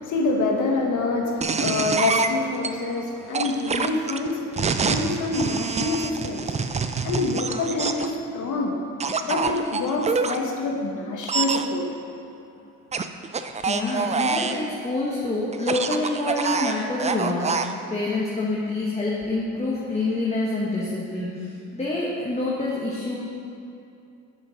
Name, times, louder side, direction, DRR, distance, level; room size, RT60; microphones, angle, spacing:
voice 1, 0.0-6.8 7.0-8.8 9.3-11.9, left 3 dB, 80° left, 1 dB, 1.4 m, -26 dB
sound 1, 1.4-2.7 3.3-8.1 9.0-10.4 11.2-11.7 12.9-14.6 15.5-17.7, right 5 dB, 25° right, 0.4 m, -26 dB
voice 2, 13.7-23.2, left 2 dB, 20° left, -5 dB, 1.5 m, -27 dB
8.6 x 6.1 x 5.3 m, 2.6 s
cardioid pair, 90°, 30 cm